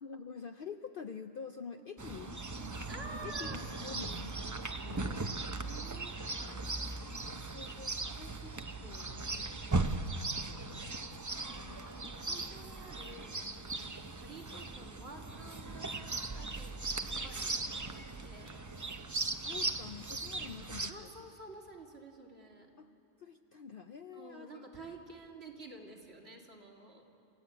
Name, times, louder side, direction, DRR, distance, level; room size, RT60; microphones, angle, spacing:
voice 1, 0.0-2.4 3.1-5.4 7.5-11.9 19.4-21.1 22.8-22.9 23.2-24.7, left 6 dB, 55° left, 7 dB, 0.7 m, -48 dB
Chirp tweet, 2.0-20.9, right 3 dB, 25° right, 0.4 m, -38 dB
voice 2, 2.6-3.6 5.5-7.8 11.4-18.6 20.9-22.7 24.1-27.0, right 3 dB, 50° right, -1 dB, 2.8 m, -51 dB
27.5 x 15.0 x 8.3 m, 2.7 s
omnidirectional pair, 1.4 m